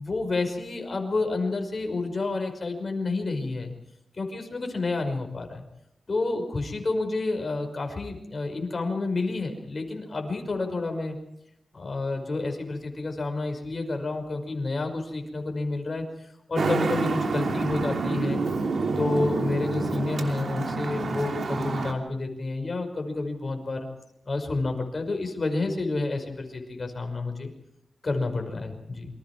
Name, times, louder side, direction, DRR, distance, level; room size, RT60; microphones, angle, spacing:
voice 1, 0.0-3.7 4.2-5.6 6.1-11.2 11.7-16.0 16.5-18.4 19.0-23.9 24.3-27.5 28.0-29.1, left 3 dB, 45° left, 3 dB, 5.7 m, -29 dB
Traffic noise roadway noise, 16.5-21.9, right 3 dB, 85° right, 2.9 m, -28 dB
28.5 x 25.0 x 4.8 m, 0.81 s
wide cardioid pair, 130°, 0 cm